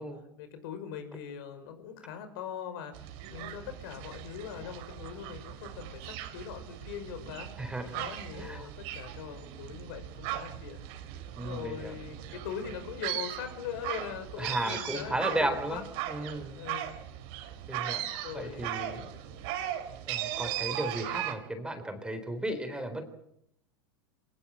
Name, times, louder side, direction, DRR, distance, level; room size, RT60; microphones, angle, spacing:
voice 1, 0.4-7.5 7.9-10.9 11.4-15.8 16.2-16.9 17.9-19.6, left 8 dB, 65° left, 9 dB, 5.7 m, -42 dB
sound 1, 2.9-21.3, right 12 dB, 55° right, 4.2 m, -38 dB
voice 2, 7.6-8.0 8.4-8.7 11.4-11.9 14.4-15.8 16.1-16.6 17.7-19.1 20.1-23.0, right 1 dB, 5° right, 9 dB, 4.0 m, -34 dB
25.5 x 19.0 x 7.4 m, 0.76 s
hypercardioid pair, 100°, 13 cm